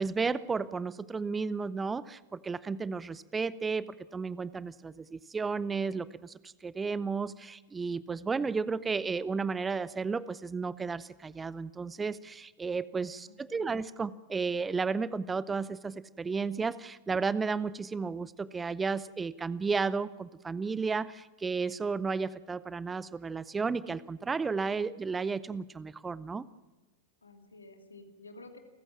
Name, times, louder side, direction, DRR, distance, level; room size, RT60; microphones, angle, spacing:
voice 1, 0.0-26.5, right 4 dB, 15° right, 18 dB, 0.6 m, -33 dB
voice 2, 13.2-13.8 27.2-28.6, left 2 dB, 75° left, 5 dB, 2.7 m, -51 dB
29.5 x 14.5 x 7.4 m, 1.1 s
figure-of-eight pair, 90°, 0 cm